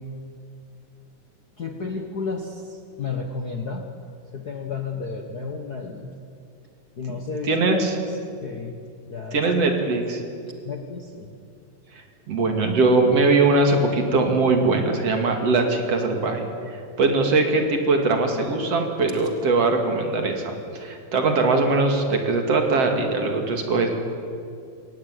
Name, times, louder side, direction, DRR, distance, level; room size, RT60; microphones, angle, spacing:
voice 1, 1.6-2.5 3.0-3.8 4.3-6.1 7.0-8.0 8.4-8.7 9.1-9.4 10.7-11.3, left 4 dB, 65° left, 3 dB, 0.9 m, -32 dB
voice 2, 7.4-8.0 9.3-10.2 12.3-16.4 16.7-23.9, right 3 dB, 50° right, 4 dB, 3.1 m, -21 dB
22.0 x 18.0 x 9.7 m, 2.4 s
omnidirectional pair, 4.0 m